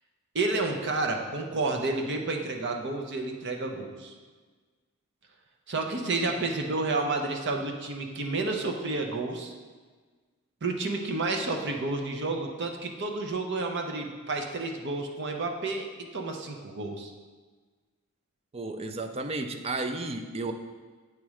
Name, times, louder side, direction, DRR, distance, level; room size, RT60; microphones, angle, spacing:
voice 1, 0.3-4.1 5.7-9.5 10.6-15.9 16.1-17.1, right 3 dB, 55° right, 3 dB, 0.7 m, -30 dB
voice 2, 18.5-20.5, right 2 dB, 25° right, 7 dB, 0.4 m, -33 dB
8.3 x 3.1 x 4.8 m, 1.4 s
head